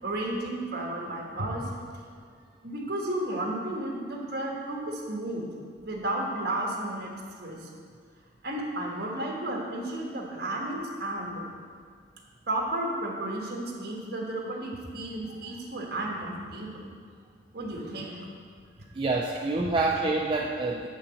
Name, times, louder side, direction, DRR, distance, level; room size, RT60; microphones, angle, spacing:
voice 1, 0.0-1.6 2.6-5.5 5.8-7.1 7.4-7.7 8.4-11.5 12.5-16.8 17.5-18.3, right 1 dB, 60° right, -1 dB, 1.4 m, -33 dB
voice 2, 18.9-20.9, right 3 dB, 30° right, 0 dB, 0.4 m, -27 dB
8.3 x 3.9 x 6.9 m, 2.1 s
head